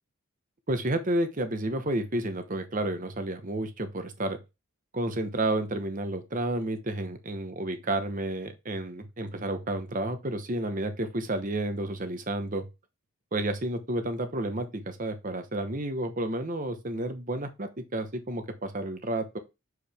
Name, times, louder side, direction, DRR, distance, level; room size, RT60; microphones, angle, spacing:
voice 1, 0.7-4.4 4.9-12.7 13.3-19.4, right 1 dB, 40° right, 9 dB, 1.0 m, -31 dB
7.0 x 4.9 x 3.5 m, 0.25 s
head